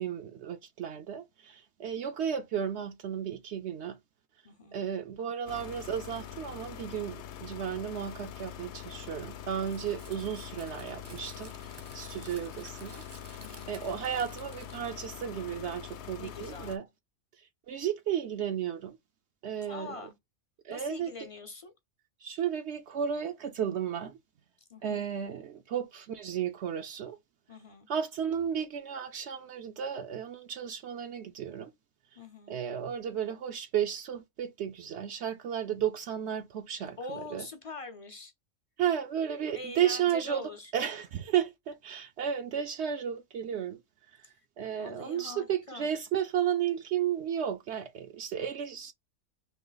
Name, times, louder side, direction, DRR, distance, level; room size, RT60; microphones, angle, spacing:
voice 1, 0.0-4.0 4.7-11.5 11.9-13.0 13.7-16.8 17.7-19.0 19.4-19.9 20.6-21.1 22.2-24.2 24.8-27.2 27.9-31.7 32.5-37.4 38.8-43.8 44.6-48.9, right 9 dB, 70° right, 0.8 m, -33 dB
voice 2, 4.4-4.8 13.4-13.8 16.2-16.7 19.6-20.1 20.7-21.7 24.7-25.0 27.5-27.9 32.2-32.6 37.0-38.3 39.5-40.7 44.2-44.5 44.8-45.9, left 2 dB, 40° left, 0.5 m, -44 dB
sound 1, 5.5-16.8, left 10 dB, 70° left, 0.9 m, -44 dB
Crumpling crinkling, 9.6-15.6, right 3 dB, 30° right, 0.5 m, -54 dB
3.1 x 2.9 x 3.8 m
omnidirectional pair, 1.2 m